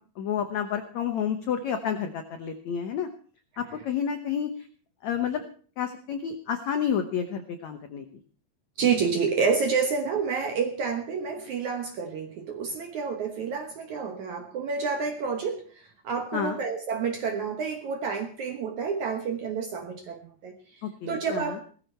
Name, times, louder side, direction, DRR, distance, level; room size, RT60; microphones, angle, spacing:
voice 1, 0.2-3.1 3.6-4.5 5.0-5.4 5.8-8.0 16.3-16.6 20.8-21.6, left 8 dB, 80° left, 7 dB, 1.6 m, -30 dB
voice 2, 8.8-20.8 21.1-21.6, right 5 dB, 65° right, 6 dB, 1.9 m, -29 dB
18.0 x 14.5 x 4.5 m, 0.42 s
omnidirectional pair, 4.9 m